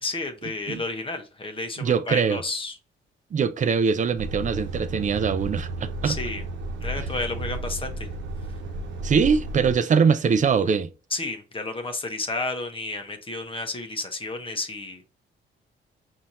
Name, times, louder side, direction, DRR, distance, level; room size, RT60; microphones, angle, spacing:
voice 1, 0.0-2.8 6.0-6.4 6.8-8.1 11.1-15.1, left 2 dB, 25° left, 1.0 m, -31 dB
voice 2, 1.8-2.4 3.3-6.2 9.0-10.9, right 6 dB, 40° right, 0.5 m, -22 dB
Truck, 4.2-9.8, right 2 dB, 70° right, 1.0 m, -33 dB
5.5 x 2.7 x 3.0 m
cardioid pair, 90°, 20 cm